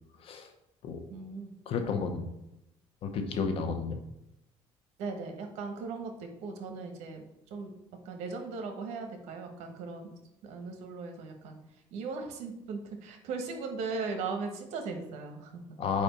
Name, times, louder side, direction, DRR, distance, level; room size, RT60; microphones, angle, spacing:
voice 1, 1.1-1.5 5.0-7.7 8.0-11.6 11.9-15.6, right 4 dB, 85° right, 5 dB, 1.1 m, -38 dB
voice 2, 1.7-2.2 3.0-4.0 15.8-16.0, left 5 dB, 55° left, 6 dB, 0.9 m, -31 dB
4.8 x 4.3 x 5.1 m, 0.86 s
cardioid pair, 120°, 11 cm